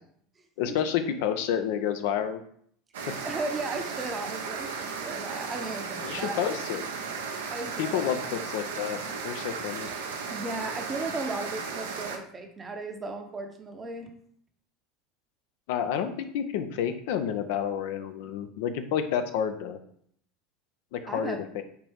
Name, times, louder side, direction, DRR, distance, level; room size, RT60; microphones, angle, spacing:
voice 1, 0.6-2.4 6.0-6.9 7.8-9.9 15.7-19.8 20.9-21.6, left 8 dB, 70° left, 9 dB, 0.4 m, -30 dB
sound 1, 2.9-12.2, right 5 dB, 80° right, 0.5 m, -35 dB
voice 2, 3.1-6.4 7.5-8.1 10.3-14.1 21.1-21.4, right 3 dB, 25° right, 4 dB, 0.7 m, -36 dB
4.4 x 2.6 x 3.4 m, 0.63 s
hypercardioid pair, 80°, 0 cm